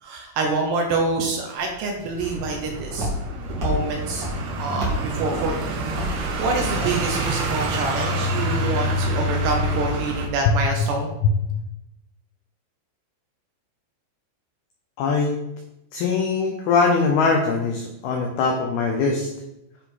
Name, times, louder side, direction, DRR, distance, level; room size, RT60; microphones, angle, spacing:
voice 1, 0.0-3.1 3.6-4.3 4.6-5.6 6.1-11.1, right 3 dB, 75° right, 1 dB, 2.7 m, -26 dB
Walk footsteps, 1.6-7.8, equal, 50° right, 1.2 m, -32 dB
sound 1, 2.2-10.3, right 1 dB, 90° right, 1.8 m, -27 dB
voice 2, 15.0-15.3 15.9-19.3, left 4 dB, 85° left, 2 dB, 2.2 m, -21 dB
10.5 x 4.9 x 3.8 m, 0.88 s
omnidirectional pair, 5.5 m